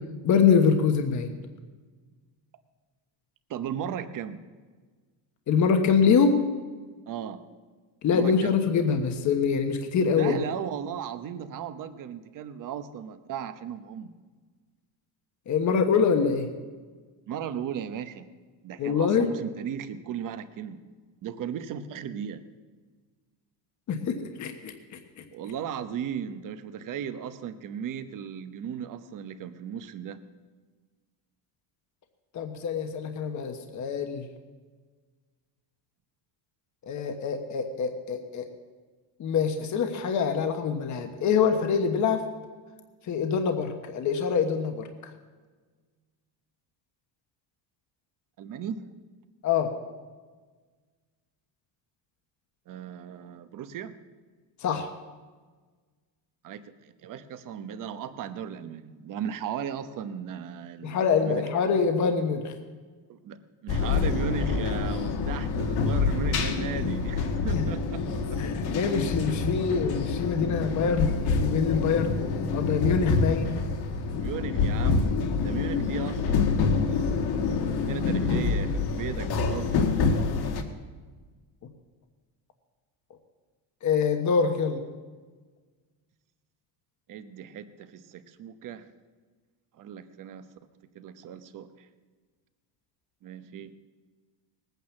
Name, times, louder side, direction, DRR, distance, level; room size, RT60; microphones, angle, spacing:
voice 1, 0.2-1.3 5.5-6.3 8.0-10.4 15.5-16.5 18.8-19.3 23.9-24.7 32.3-34.2 36.9-38.4 39.2-42.2 43.1-45.1 49.4-49.7 54.6-54.9 60.8-62.5 67.5-67.6 68.4-72.2 72.5-73.6 83.8-84.8, left 6 dB, 40° left, 5 dB, 1.2 m, -25 dB
voice 2, 3.5-4.4 7.1-7.4 8.1-8.6 10.2-14.1 17.3-18.3 18.6-20.8 21.2-22.4 25.3-30.2 48.4-48.8 52.7-54.0 56.4-61.7 63.1-68.4 74.2-77.1 77.6-79.9 87.1-88.9 89.8-90.5 90.9-91.9 93.2-93.7, right 8 dB, 45° right, 10 dB, 1.0 m, -36 dB
sound 1, 63.7-80.6, left 4 dB, 60° left, 1.7 m, -27 dB
20.0 x 9.3 x 7.2 m, 1.4 s
cardioid pair, 180°, 45 cm